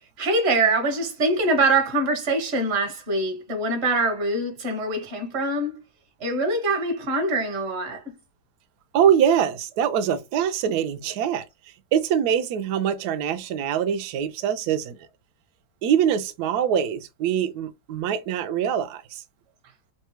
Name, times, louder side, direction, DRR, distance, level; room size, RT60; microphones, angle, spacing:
voice 1, 0.2-5.8 6.2-8.0, right 2 dB, 40° right, 1.1 m, -24 dB
voice 2, 8.9-11.4 11.9-15.0 15.8-19.2, right 9 dB, 75° right, 0.9 m, -23 dB
3.3 x 2.2 x 2.9 m
omnidirectional pair, 2.1 m